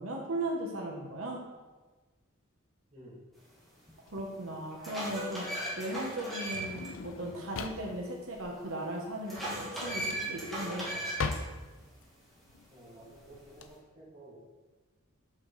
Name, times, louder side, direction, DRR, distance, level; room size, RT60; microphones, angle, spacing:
voice 1, 0.0-1.4 4.1-5.4 5.8-10.9, right 1 dB, 80° right, 0 dB, 1.0 m, -37 dB
voice 2, 2.9-3.2 12.7-14.4, right 1 dB, 25° right, -12 dB, 2.0 m, -52 dB
sound 1, 3.9-4.0 4.5-6.9 7.2-7.3 9.3-11.4, right 1 dB, ahead, 1.9 m, -37 dB
Drawer open or close, 4.1-13.7, left 4 dB, 65° left, 0.5 m, -42 dB
7.7 x 5.7 x 3.2 m, 1.3 s
head